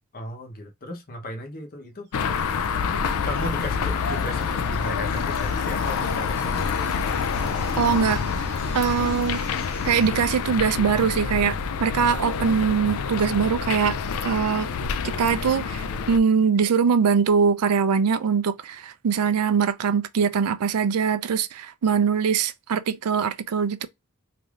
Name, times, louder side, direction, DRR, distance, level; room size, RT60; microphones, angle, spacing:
voice 1, 0.1-2.2 3.2-6.6, left 1 dB, 40° left, 0.8 m, -35 dB
sound 1, 2.1-16.2, left 5 dB, 70° left, 0.4 m, -27 dB
sound 2, 2.1-10.1, right 4 dB, 45° right, 0.9 m, -47 dB
voice 2, 7.8-8.2 8.7-9.4 9.8-14.7 15.0-23.9, right 6 dB, 85° right, 0.4 m, -22 dB
3.3 x 2.6 x 2.4 m
head